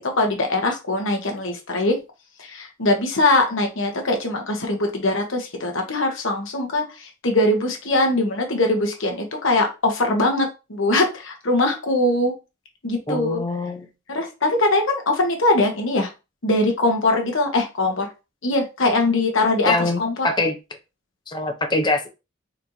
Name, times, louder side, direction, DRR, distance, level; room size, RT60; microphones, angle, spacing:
voice 1, 0.0-2.0 2.4-12.3 12.8-13.4 14.1-16.1 16.4-18.1 18.4-19.7 20.0-20.3, left 2 dB, 70° left, 3 dB, 1.2 m, -21 dB
voice 2, 13.1-13.9 19.7-20.5 21.3-22.1, left 2 dB, 20° left, 5 dB, 0.6 m, -23 dB
4.2 x 3.0 x 2.7 m, 0.28 s
head